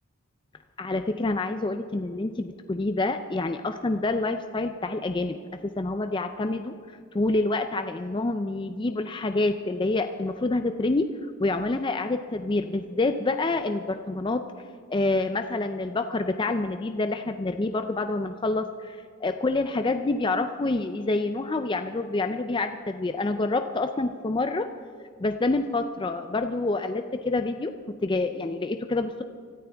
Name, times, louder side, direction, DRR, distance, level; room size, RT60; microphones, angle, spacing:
voice 1, 0.8-5.4 5.6-6.7 7.1-11.1 11.4-14.4 14.9-24.7 25.2-27.7 28.0-29.2, left 2 dB, 25° left, 7 dB, 0.4 m, -27 dB
25.0 x 13.5 x 3.5 m, 2.2 s
head